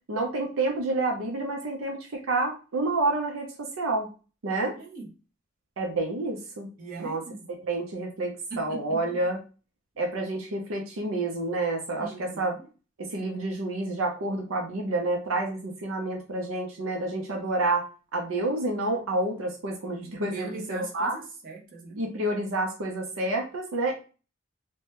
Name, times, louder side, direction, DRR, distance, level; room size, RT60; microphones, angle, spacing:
voice 1, 0.1-4.1 4.4-4.8 5.8-6.7 7.0-7.3 7.6-9.4 10.0-12.6 13.0-17.9 18.1-21.2 22.0-23.9, right 2 dB, 80° right, 2 dB, 0.6 m, -29 dB
voice 2, 4.7-5.1 6.8-7.5 8.5-9.0 12.0-12.5 20.0-22.0, right 3 dB, 45° right, -2 dB, 0.8 m, -40 dB
2.8 x 2.2 x 3.2 m, 0.34 s
head